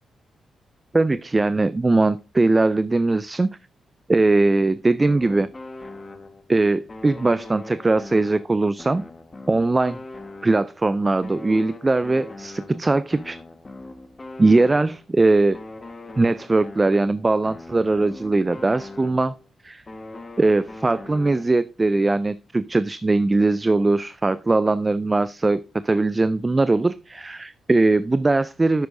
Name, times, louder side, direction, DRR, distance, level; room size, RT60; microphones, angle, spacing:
voice 1, 0.9-3.6 4.1-5.5 6.5-9.1 9.5-10.0 10.4-13.4 14.4-15.6 16.2-19.3 19.6-19.8 20.4-28.9, right 2 dB, 25° right, 16 dB, 0.3 m, -20 dB
sound 1, 5.0-6.5 6.9-10.8 11.2-15.1 15.5-19.5 19.9-21.7, left 2 dB, 30° left, 1.3 m, -41 dB
10.0 x 7.9 x 2.5 m, 0.31 s
cardioid pair, 65°, 0 cm